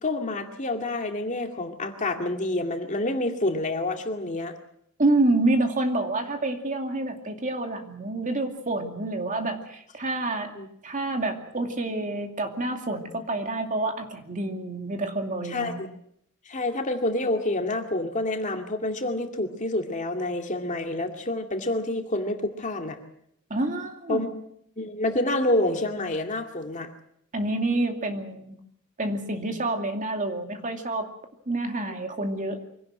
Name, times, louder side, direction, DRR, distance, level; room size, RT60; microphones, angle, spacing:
voice 1, 0.0-4.5 10.5-10.7 15.4-15.9 16.5-23.0 24.1-24.3 24.8-26.9, left 2 dB, 35° left, 4 dB, 2.3 m, -28 dB
voice 2, 5.0-10.5 10.8-15.8 23.5-24.2 27.3-28.6 29.0-31.1 31.5-32.6, right 2 dB, 35° right, 4 dB, 2.5 m, -28 dB
24.5 x 17.5 x 7.7 m, 0.72 s
head